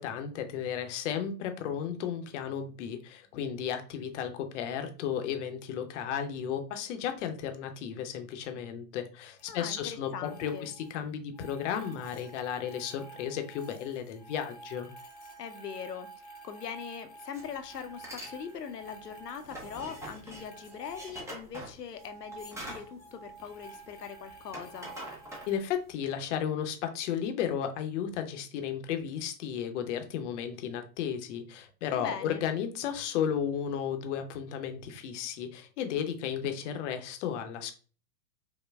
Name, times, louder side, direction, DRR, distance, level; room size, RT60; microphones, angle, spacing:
voice 1, 0.0-14.9 25.5-37.7, left 8 dB, 50° left, 6 dB, 0.7 m, -34 dB
sound 1, 9.4-9.7 10.1-11.0 11.3-21.7 21.9-25.6, right 2 dB, 20° left, 0.9 m, -50 dB
voice 2, 9.5-10.7 15.4-24.9 32.0-32.4, left 7 dB, 85° left, 8 dB, 0.7 m, -41 dB
sound 2, 17.3-17.5 17.9-18.4 18.7-24.0 24.3-25.9, right 1 dB, 5° right, 0.6 m, -44 dB
5.2 x 2.1 x 2.3 m, 0.38 s
hypercardioid pair, 105°, 47 cm